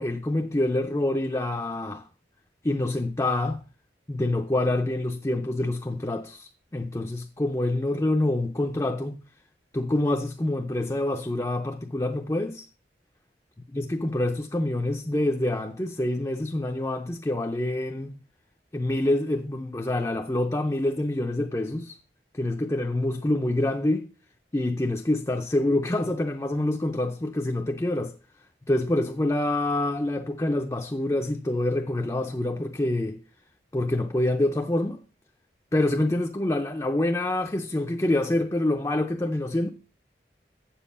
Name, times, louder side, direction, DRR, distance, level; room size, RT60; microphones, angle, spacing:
voice 1, 0.0-2.1 2.6-3.6 4.1-9.2 9.7-12.7 13.7-18.2 18.7-22.0 22.3-24.1 24.5-28.1 28.7-33.2 33.7-35.0 35.7-39.7, left 1 dB, 20° left, 0.5 m, -26 dB
7.5 x 7.3 x 5.5 m
head